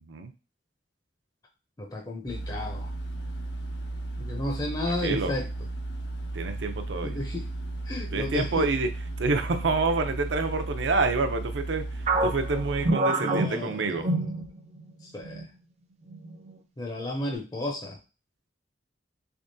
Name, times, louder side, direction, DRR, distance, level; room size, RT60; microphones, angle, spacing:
voice 1, 1.8-2.9 4.2-5.5 7.0-7.5 7.9-8.7 13.1-14.0 15.1-15.4 16.8-18.0, left 1 dB, 20° left, 1 dB, 0.5 m, -32 dB
sound 1, 2.3-12.9, right 2 dB, 70° left, 0.5 m, -35 dB
voice 2, 4.9-5.3 6.3-7.2 8.1-8.9 9.2-11.9 12.2-14.1, right 3 dB, 85° right, 7 dB, 0.6 m, -27 dB
sound 2, 12.1-14.9 15.2-15.4 16.1-16.5, right 2 dB, 35° right, 0.4 m, -27 dB
3.5 x 3.5 x 2.6 m, 0.31 s
head